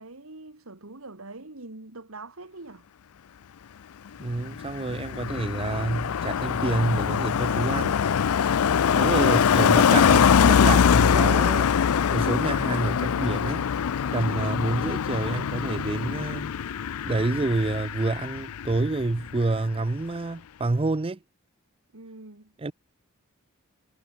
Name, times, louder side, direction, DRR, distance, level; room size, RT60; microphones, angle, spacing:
voice 1, 0.0-2.9 21.9-22.5, right 2 dB, 70° right, 2.2 m, -43 dB
Car passing by, 4.2-19.0 19.3-19.6, left 7 dB, 85° left, 0.5 m, -23 dB
voice 2, 4.2-8.0 8.9-11.7 12.1-13.7 14.1-16.5 17.0-21.2 22.6-22.7, right 2 dB, 25° right, 0.5 m, -28 dB
head